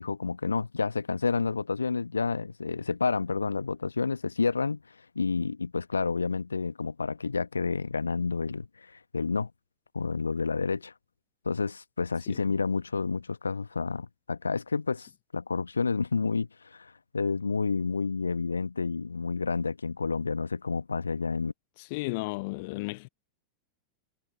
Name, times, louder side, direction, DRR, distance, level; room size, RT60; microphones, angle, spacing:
voice 1, 0.0-4.8 5.1-9.5 9.9-10.9 11.4-15.1 15.3-21.5, left 4 dB, 75° left, 1.1 m, -29 dB
voice 2, 21.8-23.1, left 25 dB, 50° left, 0.8 m, -34 dB
figure-of-eight pair, 90°, 0 cm